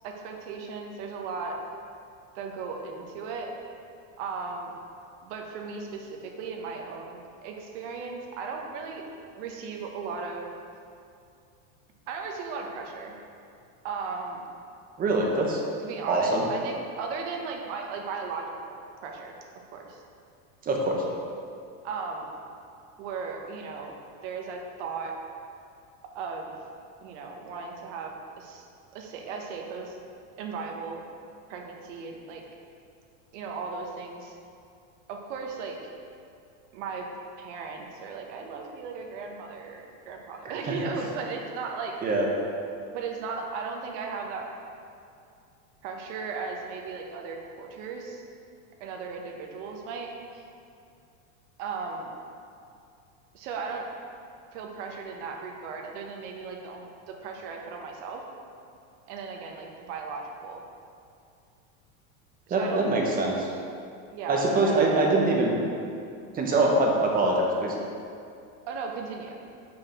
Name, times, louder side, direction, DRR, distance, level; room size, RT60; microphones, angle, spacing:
voice 1, 0.0-1.6 2.3-3.5 4.2-4.7 5.2-9.1 9.4-10.5 12.1-13.2 13.8-14.4 15.8-19.3 19.7-20.0 21.8-22.3 23.0-23.9 24.2-25.1 26.1-26.5 27.0-28.7 28.9-30.0 30.4-31.0 31.5-32.4 33.3-34.4 35.1-35.8 36.7-37.1 37.4-41.9 42.9-44.5 45.8-48.2 48.8-50.4 51.6-52.1 53.3-53.9 54.5-58.2 59.1-60.6 62.5-62.8 64.1-64.9 68.7-69.4, right 5 dB, 60° right, 1 dB, 1.2 m, -36 dB
voice 2, 15.0-15.6 16.0-16.4 20.6-21.0 40.4-40.7 42.0-42.3 62.5-63.5 64.3-65.6 66.3-67.7, right 2 dB, 20° right, -1 dB, 1.0 m, -24 dB
5.5 x 4.9 x 6.4 m, 2.5 s
supercardioid pair, 150°, 40 cm